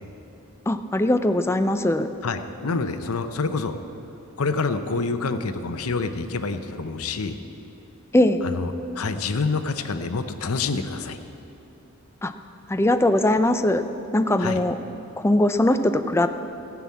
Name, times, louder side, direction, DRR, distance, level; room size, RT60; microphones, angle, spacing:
voice 1, 0.7-2.1 8.1-8.4 12.2-12.3 12.7-13.8 14.1-14.8 15.2-16.3, left 1 dB, 10° left, 9 dB, 0.4 m, -20 dB
voice 2, 2.2-3.8 4.4-7.4 8.4-11.2 14.4-14.6, left 4 dB, 85° left, 9 dB, 0.8 m, -27 dB
15.5 x 6.0 x 8.4 m, 2.8 s
head